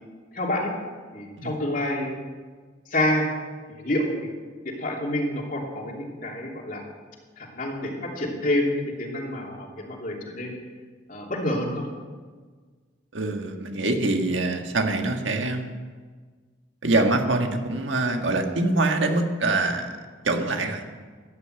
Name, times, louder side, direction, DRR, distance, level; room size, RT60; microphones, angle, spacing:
voice 1, 0.3-0.7 1.1-2.2 2.9-3.3 3.7-4.3 4.6-6.8 7.4-10.6 11.1-11.9, left 1 dB, 45° left, -1 dB, 2.9 m, -28 dB
voice 2, 13.1-15.7 16.8-20.0 20.2-20.8, right 2 dB, 75° right, 4 dB, 1.6 m, -24 dB
14.0 x 10.0 x 7.9 m, 1.5 s
head